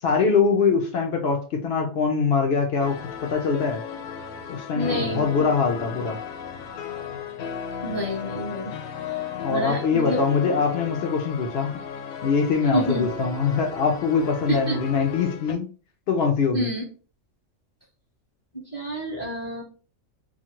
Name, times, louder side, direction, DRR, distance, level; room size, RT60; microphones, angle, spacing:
voice 1, 0.0-3.8 4.5-6.2 9.4-11.8 12.2-15.7 16.1-16.7, left 5 dB, 65° left, 3 dB, 0.6 m, -23 dB
sound 1, 2.8-15.5, left 7 dB, 90° left, 1.0 m, -35 dB
voice 2, 4.7-5.3 7.8-8.7 9.5-10.2 12.7-13.0 14.5-14.8 16.5-16.8 18.7-19.6, equal, 25° left, -5 dB, 0.7 m, -28 dB
2.5 x 2.4 x 2.9 m, 0.37 s
omnidirectional pair, 1.4 m